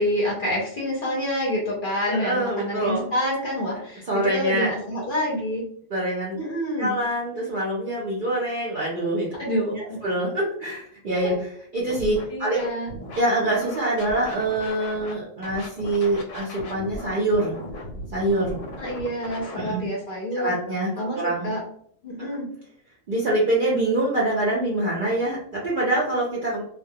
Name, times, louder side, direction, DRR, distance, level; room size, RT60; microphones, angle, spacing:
voice 1, 0.0-5.7 6.3-7.0 9.4-10.0 12.3-12.9 18.8-20.5 21.0-21.6 22.0-22.5, equal, 55° left, -3 dB, 0.6 m, -27 dB
voice 2, 2.1-3.0 4.1-4.7 5.9-6.4 6.8-9.4 9.8-12.7 13.2-17.5 18.1-18.6 19.5-19.9 20.3-21.5 22.2-22.4 23.1-26.6, right 1 dB, 60° right, -5 dB, 0.5 m, -25 dB
Scratching (performance technique), 11.9-12.2 12.6-15.1 15.4-19.6, left 1 dB, 90° left, 1.0 m, -37 dB
2.2 x 2.1 x 2.6 m, 0.63 s
omnidirectional pair, 1.4 m